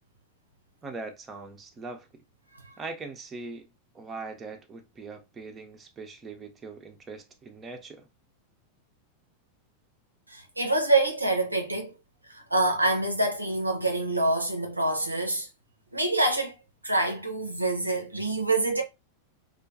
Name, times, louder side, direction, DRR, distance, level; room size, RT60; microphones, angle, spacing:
voice 1, 0.8-2.1 2.8-3.7 3.9-8.1, right 3 dB, 20° right, 0.5 m, -41 dB
voice 2, 10.3-11.9 12.3-15.5 15.9-16.5 16.8-18.8, right 2 dB, 85° right, 0.4 m, -26 dB
2.5 x 2.2 x 2.4 m
figure-of-eight pair, 90°, 0 cm